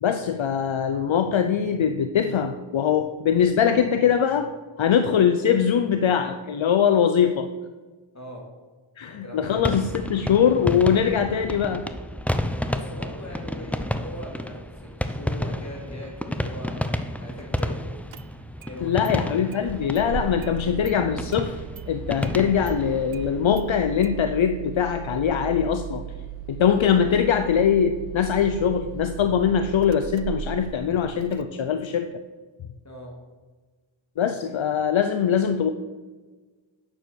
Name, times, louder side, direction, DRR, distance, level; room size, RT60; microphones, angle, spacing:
voice 1, 0.0-4.5 4.8-7.5 9.0-11.8 18.8-26.0 26.5-32.1 34.2-35.7, left 8 dB, 70° left, 8 dB, 0.6 m, -22 dB
voice 2, 8.1-8.5 9.0-9.8 12.7-17.8 18.5-19.2 32.8-33.2, equal, 35° left, -2 dB, 3.2 m, -40 dB
sound 1, 9.4-23.5, left 1 dB, 5° left, 0.6 m, -31 dB
Engine starting, 17.6-17.7 18.1-18.7 19.0-19.1 19.5-31.4, right 10 dB, 75° right, 0.6 m, -37 dB
9.2 x 6.9 x 6.3 m, 1.3 s
wide cardioid pair, 75°, 48 cm